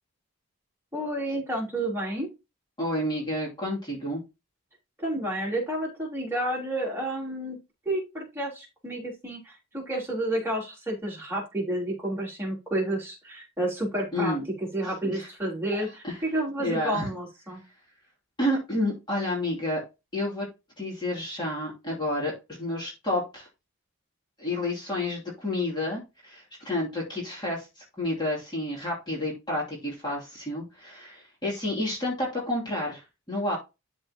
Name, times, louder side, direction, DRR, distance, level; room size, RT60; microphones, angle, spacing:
voice 1, 0.9-2.3 5.0-7.6 7.9-17.6, right 1 dB, 10° right, -4 dB, 3.9 m, -30 dB
voice 2, 2.8-4.2 14.1-14.4 14.8-15.3 16.0-16.2 16.6-17.1 18.4-19.8 20.1-20.5 20.8-23.5 24.4-33.6, left 1 dB, 20° left, -4 dB, 2.9 m, -30 dB
12.5 x 4.4 x 2.9 m, 0.26 s
head